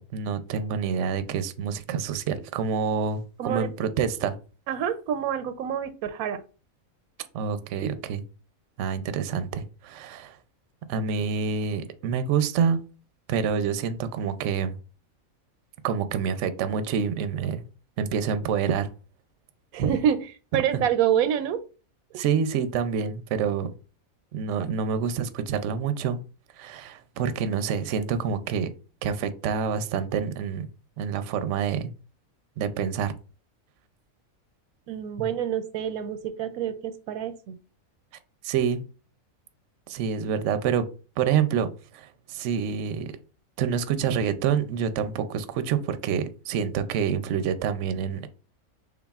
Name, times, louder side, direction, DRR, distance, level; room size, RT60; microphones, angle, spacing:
voice 1, 0.0-4.4 7.3-8.2 8.8-10.4 10.9-12.8 13.3-14.8 15.8-17.6 18.0-18.9 20.7-20.8 22.1-23.7 24.3-26.2 26.6-28.7 29.0-30.7 31.0-31.9 32.6-33.1 35.2-35.3 38.4-38.8 39.9-40.8 41.2-41.7 41.9-43.1 43.6-48.3, right 7 dB, 65° right, 0.8 m, -27 dB
voice 2, 4.7-6.4 19.7-21.6 34.9-37.6, right 9 dB, 90° right, 1.0 m, -27 dB
5.9 x 3.8 x 2.4 m
omnidirectional pair, 1.5 m